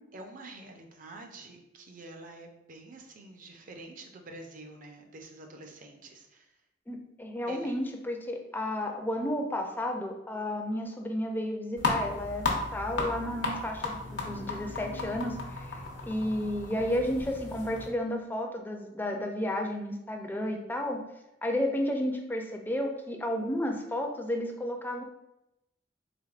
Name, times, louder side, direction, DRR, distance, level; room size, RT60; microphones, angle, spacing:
voice 1, 0.1-6.5 7.5-7.7, right 2 dB, 45° right, 4 dB, 0.5 m, -47 dB
voice 2, 6.9-12.4 12.7-15.8 16.1-21.0 21.4-25.0, left 1 dB, 10° left, 3 dB, 0.4 m, -32 dB
sound 1, 11.8-17.9, left 3 dB, 80° left, 0.7 m, -34 dB
3.4 x 3.4 x 2.4 m, 0.88 s
head